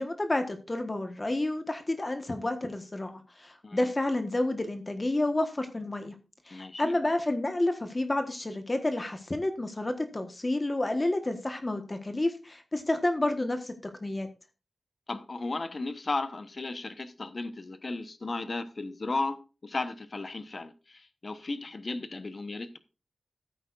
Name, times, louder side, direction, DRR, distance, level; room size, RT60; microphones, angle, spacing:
voice 1, 0.0-6.1 6.5-14.3, left 1 dB, 25° left, 1.4 m, -30 dB
voice 2, 6.5-6.9 15.1-22.8, left 3 dB, 45° left, 1.0 m, -35 dB
15.0 x 8.7 x 2.5 m
wide cardioid pair, 110°, 0 cm